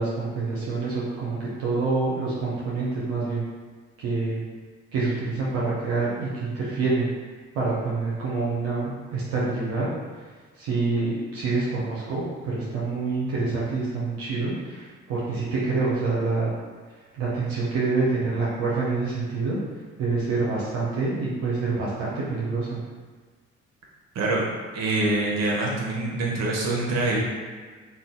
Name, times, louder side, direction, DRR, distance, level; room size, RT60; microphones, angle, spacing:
voice 1, 0.0-3.4 4.0-4.4 4.9-7.1 7.5-9.9 10.6-16.5 17.2-19.6 20.0-22.8, right 3 dB, 90° right, -7 dB, 0.6 m, -26 dB
voice 2, 24.1-24.5 24.7-27.2, right 2 dB, 65° right, -3 dB, 0.8 m, -25 dB
2.6 x 2.3 x 3.6 m, 1.5 s
hypercardioid pair, 50°, 29 cm